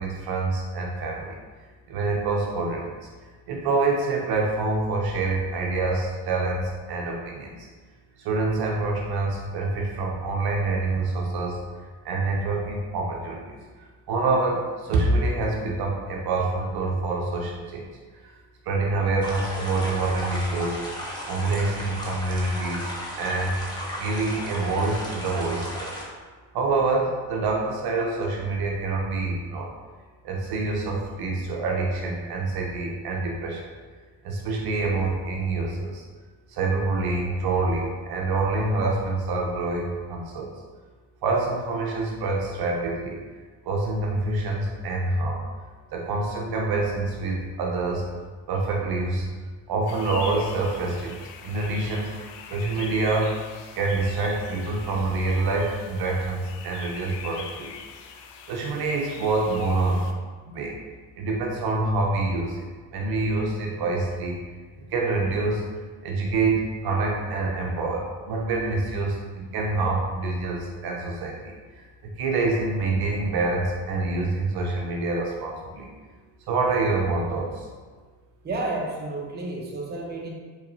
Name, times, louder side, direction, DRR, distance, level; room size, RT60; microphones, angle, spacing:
voice 1, 0.0-1.4 1.9-2.9 3.5-7.7 8.2-11.6 12.0-13.6 14.1-17.9 18.6-20.8 21.3-22.9 23.2-23.5 24.0-26.0 26.5-29.7 30.2-33.7 34.2-36.0 36.5-40.5 41.2-43.2 43.7-45.4 45.9-48.0 48.5-49.3 49.7-51.2 51.4-52.1 52.5-53.3 53.7-57.7 58.5-60.1 60.5-60.7 61.2-62.7 62.9-64.4 64.9-65.6 66.0-71.8 72.2-75.9 76.5-77.7, right 3 dB, 55° right, -1 dB, 0.7 m, -26 dB
sound 1, 19.2-26.0, equal, 10° left, 0.9 m, -35 dB
sound 2, 49.9-60.1, left 6 dB, 65° left, 0.5 m, -42 dB
voice 2, 78.4-80.3, right 2 dB, 20° right, -2 dB, 0.8 m, -31 dB
4.0 x 3.1 x 2.7 m, 1.4 s
supercardioid pair, 90°, 44 cm